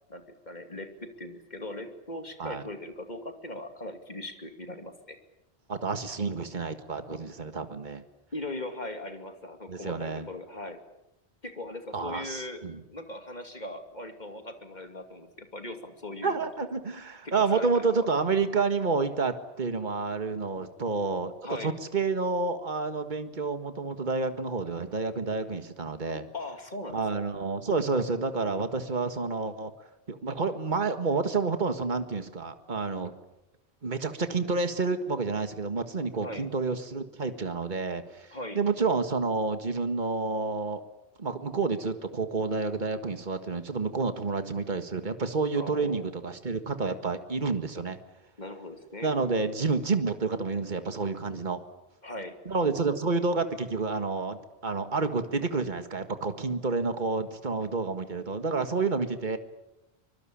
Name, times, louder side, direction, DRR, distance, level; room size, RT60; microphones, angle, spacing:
voice 1, 0.1-5.2 8.3-10.8 11.4-12.6 12.9-16.5 17.2-17.9 21.4-21.7 26.3-27.2 36.2-36.4 38.3-38.6 45.5-46.1 48.4-49.1 52.0-52.4, left 1 dB, 40° left, 6 dB, 2.8 m, -39 dB
voice 2, 5.7-8.0 9.7-10.3 11.9-12.8 16.2-21.3 21.6-26.3 26.9-29.7 30.1-33.1 33.8-38.3 38.5-40.8 41.2-48.0 49.0-51.6 52.5-54.4 54.6-59.4, right 4 dB, 45° right, 8 dB, 1.9 m, -29 dB
24.5 x 23.0 x 8.8 m, 0.91 s
omnidirectional pair, 1.1 m